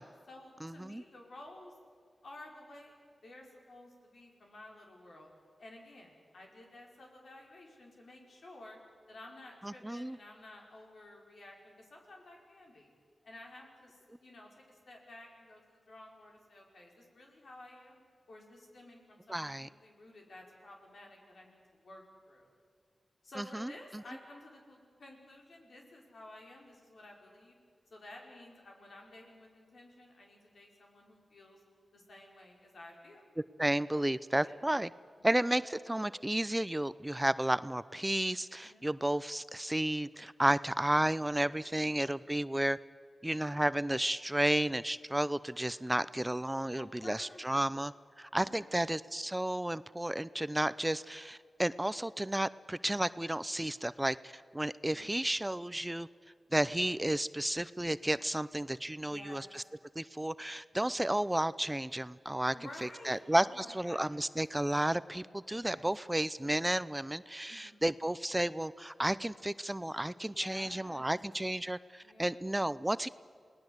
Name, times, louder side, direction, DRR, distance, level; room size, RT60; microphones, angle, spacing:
voice 1, 0.0-1.8 2.2-5.3 5.6-8.8 9.1-12.9 13.2-18.0 18.3-22.5 23.2-27.6 27.9-31.6 31.9-33.2 34.4-34.6 35.2-35.3 38.6-38.9 41.4-42.1 46.8-47.7 48.4-48.9 54.9-55.2 59.0-59.5 62.5-64.3 65.6-65.8 67.5-67.9 70.1-71.2 72.0-72.4, left 1 dB, 75° left, 0 dB, 5.5 m, -53 dB
voice 2, 0.6-1.0 9.6-10.2 19.3-19.7 23.4-23.7 33.6-34.9 35.2-42.8 43.2-56.1 56.5-59.6 60.0-62.5 62.8-73.1, right 1 dB, 15° right, 16 dB, 0.6 m, -32 dB
28.0 x 18.5 x 8.1 m, 2.2 s
cardioid pair, 45°, 0 cm